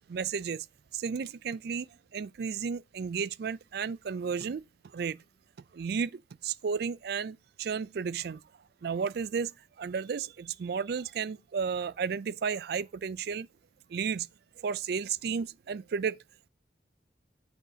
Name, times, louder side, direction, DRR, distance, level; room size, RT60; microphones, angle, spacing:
voice 1, 0.1-0.7 0.9-4.6 4.9-5.2 5.7-8.4 8.8-13.5 13.9-14.3 14.6-16.2, right 6 dB, 60° right, 0.4 m, -33 dB
8.7 x 6.0 x 2.8 m
head